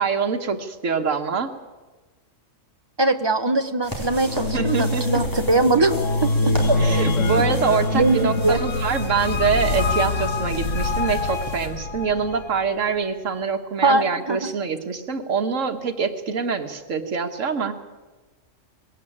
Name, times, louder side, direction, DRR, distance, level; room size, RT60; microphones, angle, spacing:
voice 1, 0.0-1.5 4.5-5.2 6.8-17.7, right 5 dB, 80° right, 5 dB, 1.8 m, -25 dB
voice 2, 3.0-6.8 7.3-7.4 7.9-8.6 13.8-14.5, right 2 dB, 20° right, 9 dB, 0.9 m, -21 dB
sound 1, 3.8-11.7, equal, 15° left, 4.3 m, -36 dB
sound 2, 4.2-12.5, left 2 dB, 80° left, 1.4 m, -24 dB
20.0 x 17.0 x 8.7 m, 1.3 s
omnidirectional pair, 1.3 m